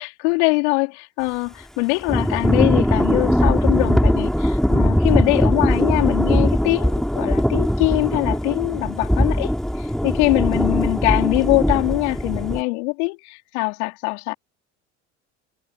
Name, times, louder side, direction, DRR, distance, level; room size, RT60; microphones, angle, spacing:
voice 1, 0.0-14.3, left 30 dB, 75° left, 4.5 m, -23 dB
Thunder / Rain, 2.1-12.6, equal, ahead, 4.0 m, -20 dB
hypercardioid pair, 75°, 34 cm